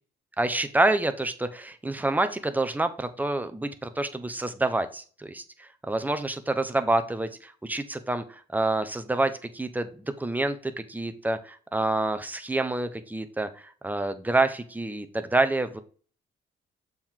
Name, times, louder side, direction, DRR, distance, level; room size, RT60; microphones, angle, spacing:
voice 1, 0.4-9.9 10.2-15.8, right 2 dB, 10° right, 9 dB, 0.8 m, -27 dB
6.9 x 4.5 x 3.7 m, 0.42 s
cardioid pair, 90°, 20 cm